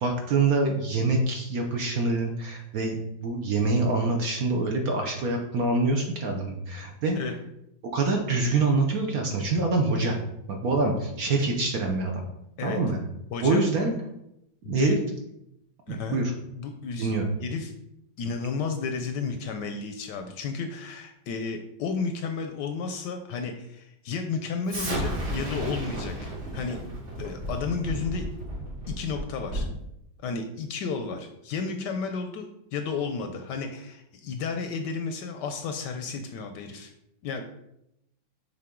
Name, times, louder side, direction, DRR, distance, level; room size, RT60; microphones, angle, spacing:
voice 1, 0.0-7.2 7.9-10.2 10.5-12.2 12.6-13.0 13.4-13.9 14.7-15.0 15.9-16.3 17.0-17.3, right 3 dB, 60° right, 2 dB, 1.0 m, -25 dB
voice 2, 13.3-13.6 14.6-15.0 15.9-16.2 16.5-17.1 17.4-17.7 18.2-26.1 26.5-26.8 27.2-28.3 28.9-29.7 30.2-36.9 37.2-37.4, left 5 dB, 75° left, 6 dB, 1.1 m, -32 dB
Explosion, 24.7-29.8, right 1 dB, 75° right, 3.4 m, -33 dB
6.7 x 3.8 x 3.6 m, 0.81 s
omnidirectional pair, 2.1 m